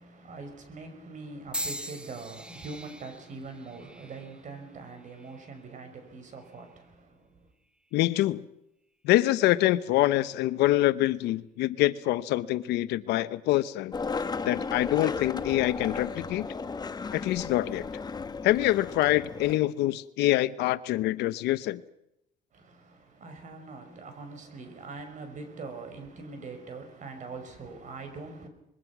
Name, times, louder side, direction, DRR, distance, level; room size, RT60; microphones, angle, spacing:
voice 1, 0.0-7.5 22.5-28.5, right 3 dB, 45° right, 5.8 m, -43 dB
sound 1, 1.5-5.7 6.4-6.8 7.8-8.0, right 1 dB, 5° right, 1.4 m, -41 dB
voice 2, 7.9-8.4 9.0-13.9 14.4-16.5 17.1-17.8 18.4-21.8, left 15 dB, 85° left, 0.9 m, -25 dB
Skateboard, 13.9-19.6, left 4 dB, 25° left, 1.1 m, -35 dB
25.0 x 21.5 x 6.1 m
cardioid pair, 110°, 17 cm